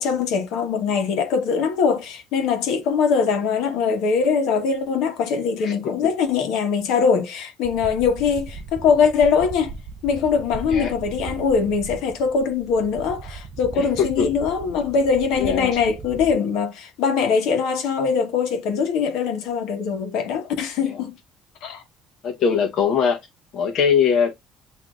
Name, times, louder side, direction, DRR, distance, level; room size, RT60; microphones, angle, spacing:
voice 1, 0.0-9.7 10.0-21.2 21.6-21.8, left 6 dB, 70° left, 1.0 m, -22 dB
sound 1, 7.6-16.3, right 4 dB, 30° right, 0.4 m, -37 dB
voice 2, 13.7-14.2 15.4-15.7 22.2-23.2 23.5-24.3, left 7 dB, 40° left, 0.8 m, -21 dB
8.0 x 2.7 x 2.4 m
cardioid pair, 175°, 0 cm